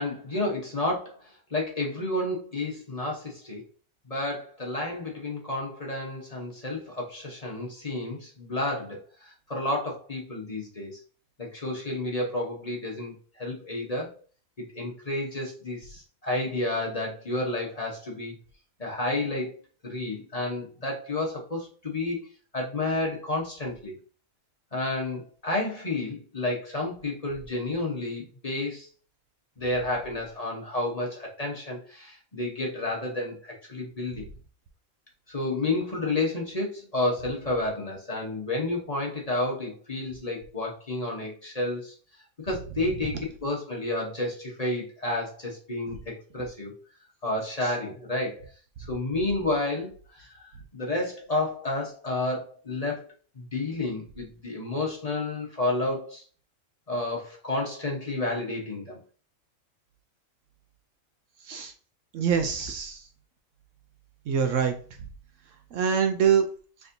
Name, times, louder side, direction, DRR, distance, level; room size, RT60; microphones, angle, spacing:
voice 1, 0.0-3.6 4.1-11.0 11.4-14.1 14.6-18.3 18.8-19.6 19.8-24.0 24.7-28.9 29.6-34.2 35.3-41.9 42.4-46.7 47.2-48.5 48.9-53.1 53.3-56.2 56.9-59.0, left 2 dB, 30° left, -3 dB, 1.0 m, -31 dB
voice 2, 62.1-63.0 64.3-64.7 65.7-66.5, right 7 dB, 70° right, 7 dB, 0.9 m, -24 dB
4.2 x 3.4 x 2.6 m, 0.40 s
omnidirectional pair, 1.5 m